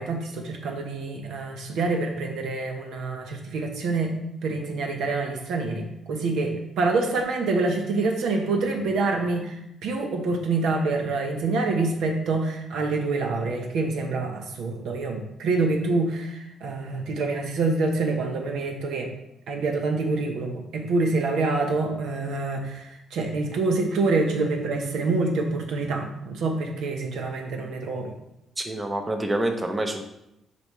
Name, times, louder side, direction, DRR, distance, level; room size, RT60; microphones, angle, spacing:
voice 1, 0.0-4.1 4.4-19.1 19.5-28.1, right 3 dB, 80° right, 3 dB, 0.9 m, -26 dB
voice 2, 28.6-30.0, right 1 dB, 20° right, 5 dB, 0.7 m, -27 dB
7.0 x 4.3 x 3.1 m, 0.85 s
cardioid pair, 90°, 0 cm